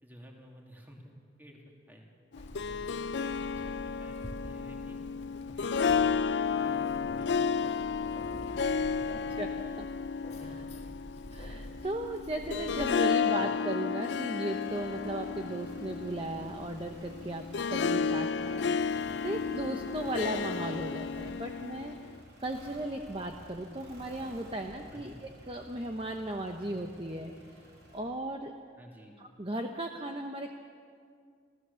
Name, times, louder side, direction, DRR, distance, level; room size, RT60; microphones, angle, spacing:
voice 1, 0.0-1.1 1.4-2.1 2.7-5.0 5.5-5.7 6.0-9.3 10.4-10.5 10.8-10.9 13.2-13.6 24.9-25.2 28.8-29.2, equal, 10° right, 0 dB, 2.7 m, -53 dB
Harp, 2.3-22.2, left 5 dB, 70° left, 0.4 m, -32 dB
Keys jangling, 2.4-12.9, left 1 dB, 35° left, 1.5 m, -47 dB
voice 2, 11.3-17.4 17.7-22.1 22.4-25.1 25.5-27.3 27.9-28.5 29.2-30.5, right 1 dB, 30° right, 3 dB, 1.0 m, -36 dB
sound 1, 13.7-28.0, equal, 60° right, 5.7 m, -52 dB
29.0 x 15.0 x 7.1 m, 2.1 s
head